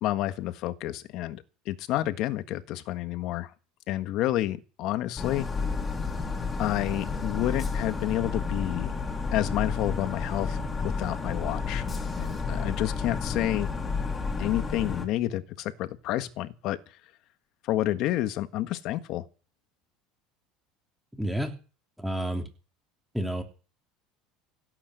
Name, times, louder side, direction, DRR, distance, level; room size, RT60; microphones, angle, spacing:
voice 1, 0.0-3.5 3.9-5.5 6.6-8.9 9.3-11.8 12.2-13.7 14.4-16.8 17.6-19.2, left 14 dB, 55° left, 1.6 m, -29 dB
sound 1, 5.2-15.1, left 4 dB, 20° left, 3.0 m, -31 dB
voice 2, 21.1-21.5 22.0-22.5 23.1-23.4, right 1 dB, 5° right, 3.0 m, -30 dB
17.0 x 8.8 x 8.1 m
supercardioid pair, 135°, 0 cm